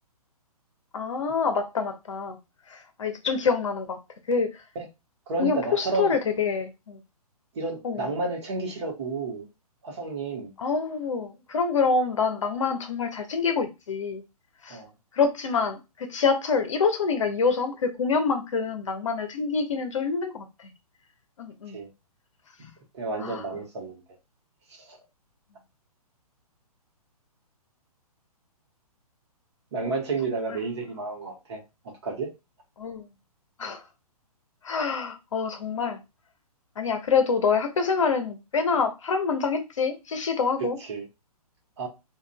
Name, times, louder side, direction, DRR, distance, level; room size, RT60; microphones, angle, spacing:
voice 1, 0.9-2.4 2.7-4.0 4.3-4.6 5.4-7.0 7.8-8.1 10.6-14.2 14.6-14.8 15.1-20.7 21.4-21.8 23.2-23.4 32.8-33.1 33.6-33.8 34.6-36.0 36.8-40.8, left 5 dB, 55° left, 0.7 m, -26 dB
voice 2, 5.3-6.2 7.5-9.5 9.8-10.5 14.7-14.9 21.7-21.9 22.9-24.0 24.8-25.0 29.7-31.6 32.0-32.3 40.9-41.1 41.8-41.9, right 3 dB, 45° right, 1.1 m, -31 dB
3.7 x 2.3 x 2.2 m
figure-of-eight pair, 125°, 20 cm